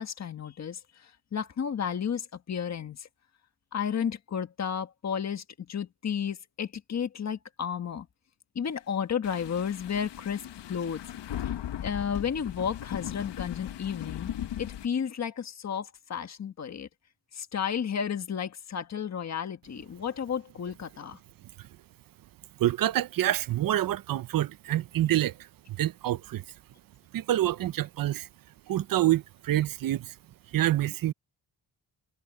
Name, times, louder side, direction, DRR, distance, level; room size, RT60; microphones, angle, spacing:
voice 1, 0.0-3.1 3.7-8.1 8.5-10.4 10.7-11.0 11.4-11.5 11.8-16.9 17.3-21.2, left 7 dB, 40° left, 1.5 m, -32 dB
sound 1, 9.2-14.9, left 11 dB, 90° left, 1.1 m, -38 dB
voice 2, 22.6-26.4 27.1-28.3 28.7-30.1 30.5-31.1, right 13 dB, 55° right, 0.6 m, -27 dB
wide cardioid pair, 170°, 41 cm